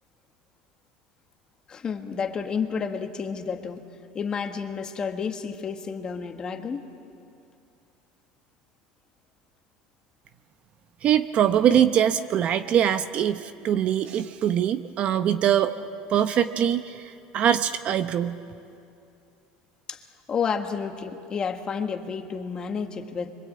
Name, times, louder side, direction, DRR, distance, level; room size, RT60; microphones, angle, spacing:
voice 1, 1.7-3.8 4.1-6.8 19.9-20.0 20.3-23.3, left 6 dB, 25° left, 5 dB, 1.5 m, -30 dB
voice 2, 11.0-15.7 16.1-18.4, right 9 dB, 40° right, 10 dB, 0.8 m, -23 dB
26.5 x 24.0 x 8.7 m, 2.6 s
cardioid pair, 150°, 3 cm